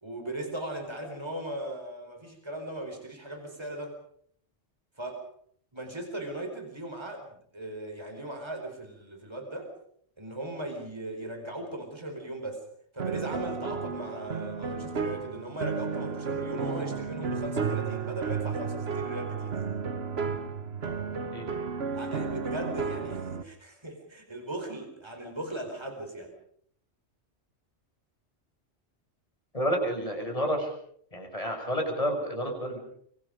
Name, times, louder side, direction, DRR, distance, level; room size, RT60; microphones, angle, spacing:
voice 1, 0.0-3.9 5.0-5.2 5.7-9.7 10.2-12.6 12.9-19.6 21.9-26.3, right 1 dB, 20° right, 4 dB, 4.6 m, -38 dB
sound 1, 13.0-23.4, right 5 dB, 60° right, 1.5 m, -33 dB
voice 2, 29.5-30.7 31.1-32.8, equal, 30° left, 2 dB, 6.6 m, -30 dB
25.0 x 24.5 x 5.1 m, 0.64 s
omnidirectional pair, 1.2 m